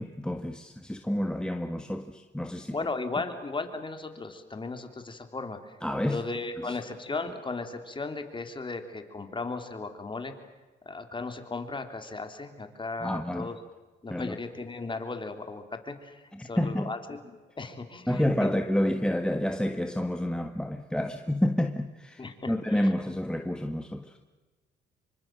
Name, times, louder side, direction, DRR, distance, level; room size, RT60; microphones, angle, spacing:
voice 1, 0.0-2.7 5.8-6.2 6.6-6.8 13.0-13.5 14.1-14.3 16.3-16.9 18.1-24.2, left 1 dB, 5° left, 1.5 m, -29 dB
voice 2, 2.6-5.8 6.0-10.3 10.8-13.6 14.0-17.2 17.6-18.5 18.8-19.1 22.2-22.9, left 3 dB, 25° left, 3.4 m, -36 dB
26.5 x 24.5 x 7.7 m
cardioid pair, 90°, 20 cm